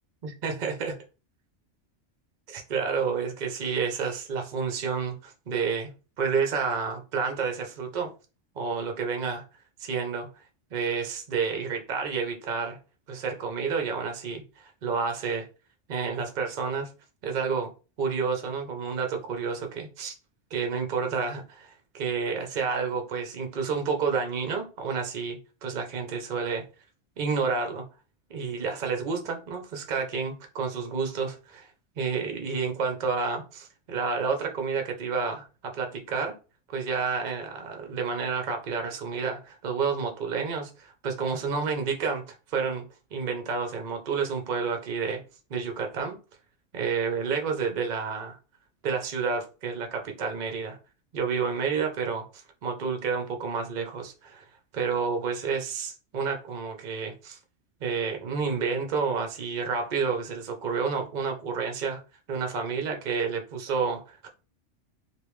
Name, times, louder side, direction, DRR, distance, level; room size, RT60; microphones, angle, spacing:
voice 1, 0.2-0.9 2.5-5.9 6.2-8.1 8.6-9.4 9.8-10.3 10.7-12.8 13.1-15.5 15.9-16.9 17.2-17.7 18.0-20.1 20.5-26.6 27.2-27.8 28.3-31.7 32.0-36.3 36.7-42.2 42.5-42.8 43.1-45.2 45.5-46.2 46.7-48.4 48.8-50.8 51.1-54.4 54.7-57.4 57.8-62.0 62.3-64.3, right 5 dB, 50° right, 0.7 m, -30 dB
3.3 x 2.7 x 3.1 m
omnidirectional pair, 1.2 m